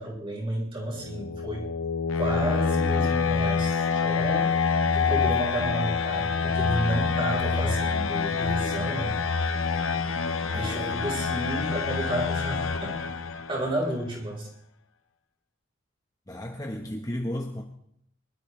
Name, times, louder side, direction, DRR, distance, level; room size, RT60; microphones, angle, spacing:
voice 1, 0.0-1.6 2.1-4.5 4.9-9.2 10.5-13.0 13.5-14.5, right 1 dB, 25° right, -2 dB, 4.4 m, -31 dB
sound 1, 0.9-13.7, left 5 dB, 70° left, 0.9 m, -26 dB
voice 2, 10.5-11.0 16.3-17.6, left 1 dB, 15° left, 1 dB, 1.0 m, -34 dB
24.0 x 12.5 x 3.2 m, 0.71 s
head